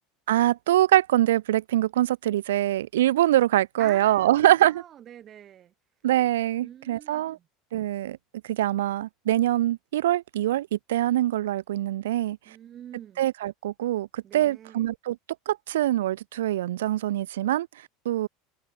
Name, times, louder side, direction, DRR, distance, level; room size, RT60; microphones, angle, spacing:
voice 1, 0.3-4.8 6.0-7.4 7.7-8.2 8.5-12.4 13.2-15.2 15.5-17.7 18.1-18.3, right 13 dB, 85° right, 0.3 m, -24 dB
voice 2, 3.8-5.7 6.6-7.4 12.5-13.2 14.2-14.8, right 10 dB, 40° right, 3.7 m, -45 dB
supercardioid pair, 100°, 0 cm